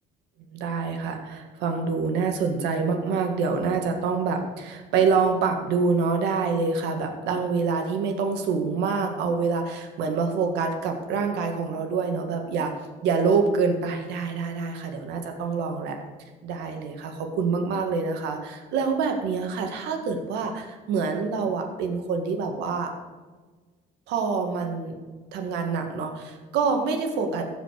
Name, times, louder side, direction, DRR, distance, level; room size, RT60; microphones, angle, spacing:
voice 1, 0.5-12.7 13.0-16.0 16.4-22.9 24.1-24.9 25.3-27.5, right 5 dB, 85° right, 4 dB, 1.8 m, -26 dB
15.0 x 5.3 x 6.5 m, 1.3 s
cardioid pair, 110°, 17 cm